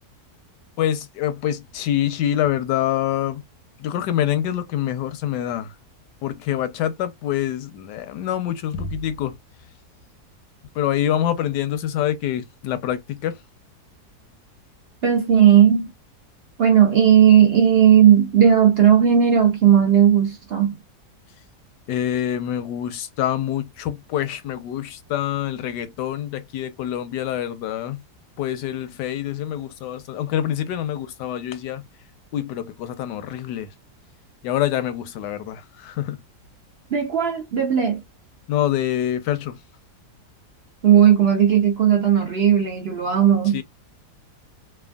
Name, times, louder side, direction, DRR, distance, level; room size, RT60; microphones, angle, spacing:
voice 1, 0.8-3.4 3.8-5.7 6.2-9.3 10.7-13.4 21.9-28.0 28.4-31.8 32.3-33.7 34.4-36.2 38.5-39.6 43.5-43.6, left 11 dB, 85° left, 1.2 m, -26 dB
voice 2, 15.0-15.9 16.6-20.7 36.9-38.0 40.8-43.6, right 9 dB, 55° right, 0.7 m, -16 dB
3.4 x 2.2 x 2.2 m
omnidirectional pair, 1.8 m